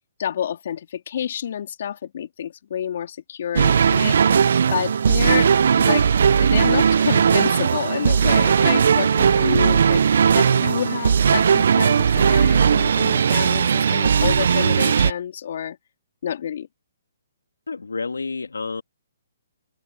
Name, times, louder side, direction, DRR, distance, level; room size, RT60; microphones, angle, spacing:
voice 1, 0.2-4.2 4.7-6.1 6.4-10.0 10.3-15.8 16.2-16.7, left 9 dB, 60° left, 3.4 m, -28 dB
sound 1, 3.5-15.1, right 7 dB, 65° right, 0.6 m, -18 dB
voice 2, 17.7-18.8, left 4 dB, 90° left, 1.9 m, -29 dB
open air
hypercardioid pair, 140°, 0 cm